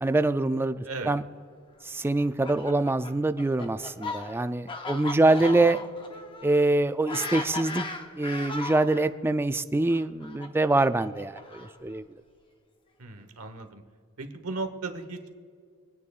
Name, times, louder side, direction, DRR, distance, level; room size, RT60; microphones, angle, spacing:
voice 1, 0.0-1.2 1.9-5.8 6.4-7.9 8.2-12.0, right 2 dB, 10° right, 11 dB, 0.3 m, -25 dB
Fowl, 2.2-9.1 9.9-11.9, left 3 dB, 25° left, 0.8 m, -37 dB
voice 2, 13.0-13.8 14.2-15.4, right 3 dB, 75° right, 7 dB, 1.2 m, -36 dB
26.0 x 9.6 x 2.4 m, 2.1 s
head